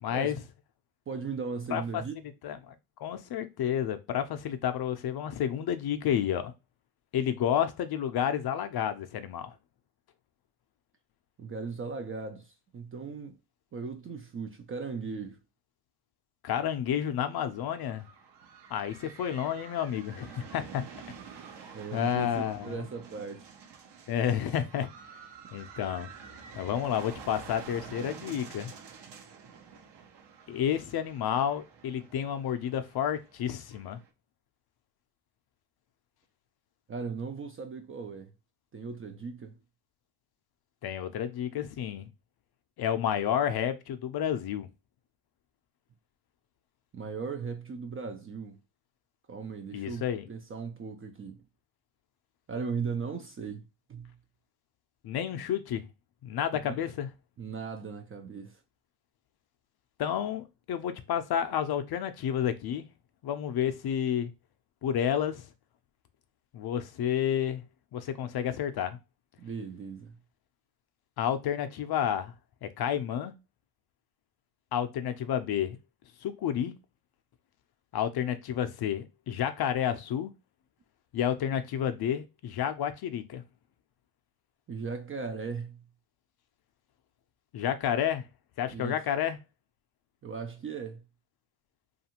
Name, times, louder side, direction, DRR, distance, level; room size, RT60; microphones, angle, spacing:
voice 1, 0.0-0.4 1.7-2.0 2.4-2.7 3.0-6.5 7.1-9.5 16.4-18.0 18.7-20.8 21.9-22.8 24.1-24.9 25.5-26.1 26.6-28.7 30.5-34.0 40.8-42.1 42.8-44.7 49.7-50.3 55.0-55.9 56.2-57.1 60.0-62.9 63.2-64.3 64.8-65.5 66.5-67.6 67.9-69.0 71.2-72.3 72.6-73.3 74.7-75.8 76.2-76.7 77.9-80.3 81.1-83.4 87.5-88.2 88.6-89.4, left 9 dB, 50° left, 0.5 m, -30 dB
voice 2, 1.1-2.2 11.4-13.4 13.7-15.4 21.7-23.5 36.9-38.3 38.7-39.6 46.9-48.6 49.3-51.4 52.5-53.6 53.9-54.2 56.6-56.8 57.4-58.6 69.4-70.1 84.7-85.8 88.7-89.0 90.2-91.0, right 5 dB, 30° right, 0.4 m, -37 dB
sound 1, 17.5-34.1, right 6 dB, 55° right, 0.7 m, -49 dB
2.6 x 2.5 x 2.8 m
supercardioid pair, 80°, 50 cm